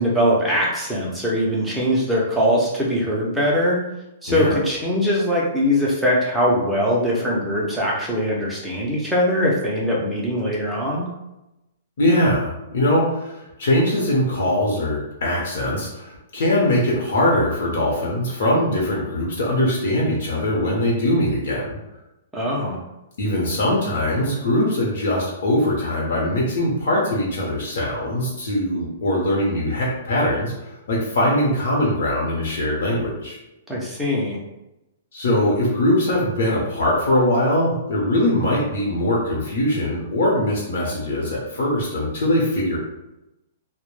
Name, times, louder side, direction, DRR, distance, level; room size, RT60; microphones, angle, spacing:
voice 1, 0.0-3.8 4.2-11.0 22.3-22.8 33.7-34.4, equal, ahead, -6 dB, 0.4 m, -21 dB
voice 2, 4.3-4.6 12.0-21.8 23.2-33.4 35.1-42.8, left 1 dB, 60° left, -3 dB, 0.7 m, -21 dB
2.1 x 2.0 x 3.0 m, 0.92 s
hypercardioid pair, 175°, 0 cm